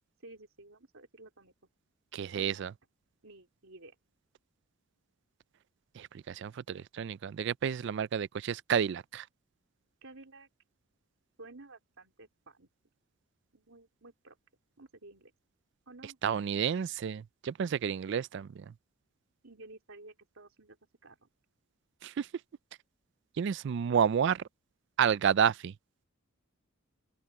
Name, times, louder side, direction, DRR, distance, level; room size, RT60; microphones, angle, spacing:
voice 1, 0.2-1.5 2.3-2.7 3.2-3.9 10.0-10.5 11.4-12.7 13.5-14.4 14.8-15.3 15.8-16.2 19.4-20.8 21.0-21.3, right 2 dB, 75° right, 3.5 m, -53 dB
voice 2, 2.1-2.7 6.0-9.3 16.2-18.7 22.0-22.3 23.4-24.4 25.0-25.7, right 7 dB, 55° right, 0.3 m, -30 dB
open air
head